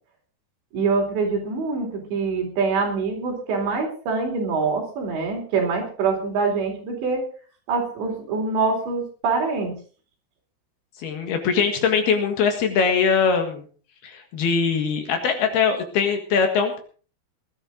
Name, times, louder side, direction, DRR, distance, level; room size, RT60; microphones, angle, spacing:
voice 1, 0.7-7.2 7.7-9.7, right 4 dB, 75° right, 1 dB, 6.0 m, -24 dB
voice 2, 11.0-13.7 14.0-16.8, left 6 dB, 65° left, 5 dB, 3.5 m, -22 dB
20.0 x 12.0 x 3.9 m, 0.41 s
omnidirectional pair, 5.2 m